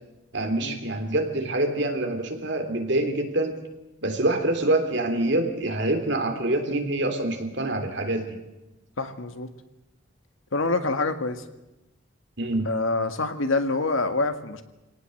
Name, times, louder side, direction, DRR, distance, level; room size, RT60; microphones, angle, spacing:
voice 1, 0.3-3.6 4.0-8.4 12.4-12.7, right 2 dB, 55° right, 5 dB, 3.4 m, -26 dB
voice 2, 9.0-9.5 10.5-11.4 12.7-14.6, left 3 dB, 75° left, 9 dB, 1.9 m, -26 dB
25.0 x 18.0 x 7.9 m, 0.98 s
head